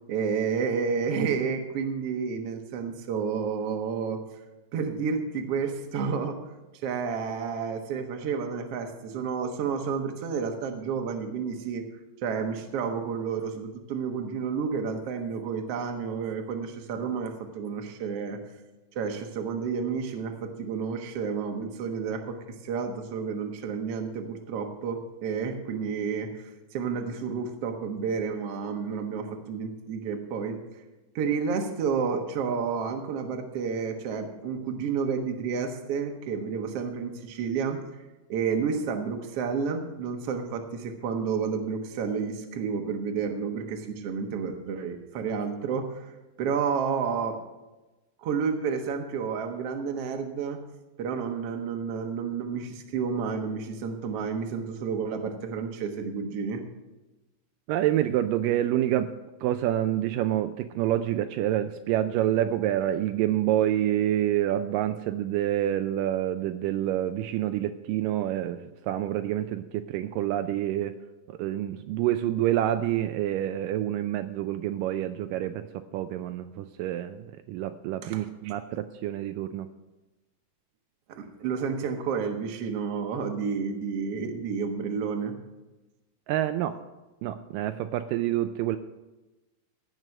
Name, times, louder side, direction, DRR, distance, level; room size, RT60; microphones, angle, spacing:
voice 1, 0.1-4.2 4.7-6.4 6.8-11.9 12.2-18.4 19.0-22.4 22.6-30.6 31.2-37.8 38.3-46.1 46.4-47.4 48.2-50.6 51.0-56.6 78.0-78.2 81.1-85.3, right 6 dB, 55° right, 4 dB, 1.9 m, -30 dB
voice 2, 57.7-59.1 59.4-71.0 71.3-79.7 86.3-86.8 87.2-88.8, right 12 dB, 80° right, 9 dB, 2.1 m, -27 dB
16.5 x 6.2 x 6.6 m, 1.1 s
omnidirectional pair, 4.0 m